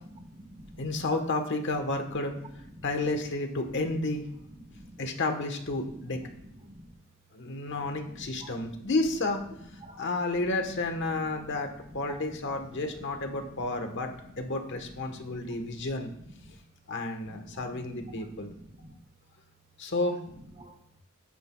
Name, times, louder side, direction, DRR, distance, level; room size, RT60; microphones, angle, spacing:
voice 1, 0.2-0.8 2.8-2.9 4.8-5.0 5.9-6.0 6.6-6.9 8.1-8.5 9.8-10.0 11.5-11.6 12.1-12.2 13.0-13.1 13.9-14.1 15.1-15.2 15.6-15.7 17.5-18.9 20.6-20.7, right 1 dB, 30° right, 1.0 m, -48 dB
voice 2, 0.8-2.4 2.8-4.3 5.0-6.2 7.3-9.4 10.0-14.1 14.4-16.1 16.9-18.5 19.8-20.2, left 2 dB, 60° left, 1.3 m, -31 dB
15.5 x 9.1 x 2.3 m
head